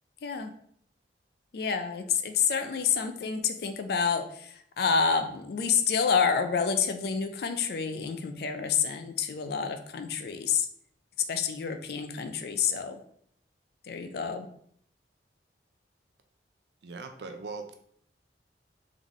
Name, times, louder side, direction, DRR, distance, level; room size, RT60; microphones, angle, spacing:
voice 1, 1.5-10.7 11.3-13.0 13.9-14.5, left 6 dB, 60° left, 8 dB, 0.4 m, -28 dB
voice 2, 16.8-17.7, right 3 dB, 75° right, 6 dB, 0.5 m, -40 dB
3.8 x 3.7 x 3.0 m, 0.66 s
head